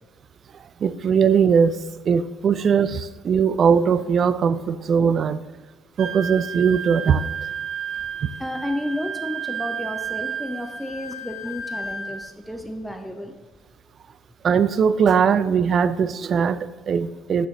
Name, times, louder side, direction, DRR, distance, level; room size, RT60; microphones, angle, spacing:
voice 1, 0.8-1.8 2.1-5.4 6.0-7.2 14.4-17.5, right 6 dB, 50° right, 14 dB, 0.3 m, -20 dB
Wind instrument woodwind instrument, 6.0-12.2, right 6 dB, 65° right, 1.2 m, -32 dB
voice 2, 8.4-13.4, left 1 dB, ahead, 4 dB, 0.6 m, -32 dB
6.3 x 4.3 x 3.9 m, 1.3 s
supercardioid pair, 70°, 0 cm